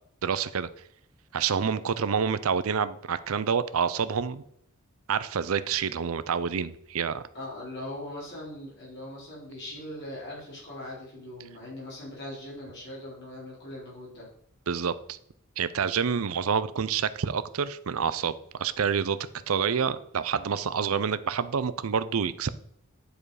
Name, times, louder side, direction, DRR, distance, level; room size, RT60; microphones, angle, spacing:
voice 1, 0.2-0.7 1.3-4.4 5.1-7.2 14.7-15.2 15.6-19.2 19.5-22.5, right 6 dB, 80° right, 15 dB, 0.6 m, -28 dB
voice 2, 7.3-14.3 16.1-16.3, left 1 dB, 55° left, -6 dB, 4.0 m, -40 dB
10.0 x 4.9 x 4.9 m, 0.67 s
head